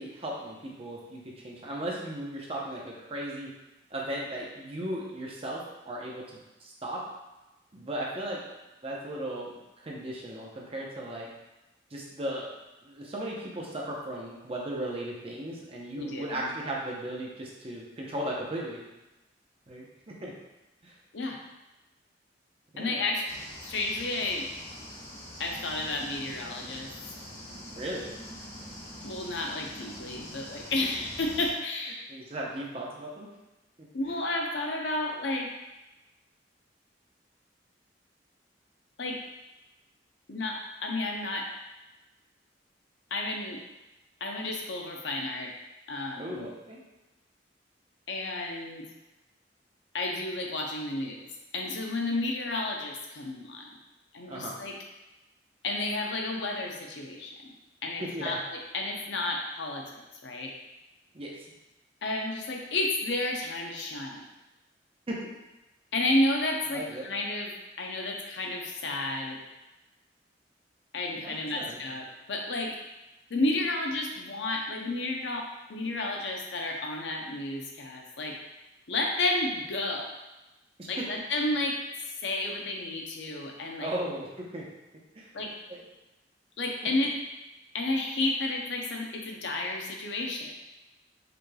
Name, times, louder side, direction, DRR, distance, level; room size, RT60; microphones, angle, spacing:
voice 1, 0.0-3.5 3.9-7.0 7.7-8.4 8.8-9.5 9.8-11.3 11.9-12.5 12.8-18.8 19.7-20.3 20.8-20.9 22.7-23.0 27.8-28.1 32.1-33.3 46.2-46.8 54.3-54.6 58.0-58.4 61.1-61.5 65.1-65.2 66.7-67.1 71.1-71.8 80.8-81.1 83.8-84.7 85.2-85.3 85.7-85.8, right 1 dB, 35° right, -3 dB, 0.7 m, -36 dB
voice 2, 16.0-16.5 21.1-21.4 22.8-23.3 23.6-24.5 25.4-26.9 29.0-32.0 33.9-35.5 39.0-39.2 40.3-41.5 43.1-43.6 44.2-45.5 45.9-46.5 48.1-48.8 49.9-51.3 51.5-53.7 54.1-54.7 55.6-57.5 57.8-58.4 58.7-60.5 62.0-64.3 65.9-67.5 67.8-69.4 70.9-72.7 73.3-75.4 75.7-78.3 78.9-80.1 80.9-81.8 82.2-83.9 85.3-85.5 86.6-87.1 87.7-90.5, left 2 dB, 70° left, 0 dB, 0.6 m, -31 dB
sound 1, 23.3-31.5, equal, 40° left, 1.1 m, -44 dB
5.0 x 3.1 x 2.3 m, 1.0 s
head